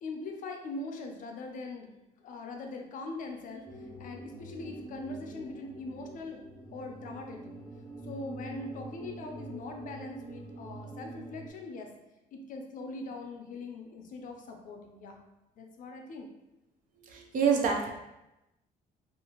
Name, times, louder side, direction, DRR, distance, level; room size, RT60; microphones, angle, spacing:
voice 1, 0.0-1.9 2.2-6.4 6.7-7.5 8.0-11.9 12.3-15.2 15.6-16.3, left 2 dB, 50° left, 3 dB, 0.5 m, -41 dB
sound 1, 3.7-11.5, right 1 dB, 5° left, 0.6 m, -45 dB
voice 2, 17.0-17.9, right 6 dB, 50° right, 1 dB, 0.5 m, -27 dB
2.6 x 2.4 x 2.8 m, 0.96 s
cardioid pair, 110°, 17 cm